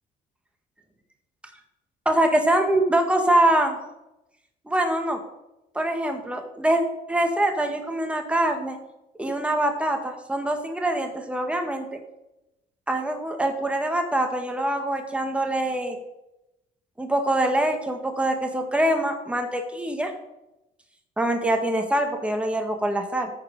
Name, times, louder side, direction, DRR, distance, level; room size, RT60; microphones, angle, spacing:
voice 1, 2.0-3.8 4.6-5.2 5.7-6.8 7.1-8.8 9.2-11.8 12.9-16.0 17.0-20.1 21.2-23.3, right 1 dB, 5° right, 4 dB, 1.7 m, -24 dB
14.0 x 4.8 x 5.3 m, 0.91 s
cardioid pair, 110°, 17 cm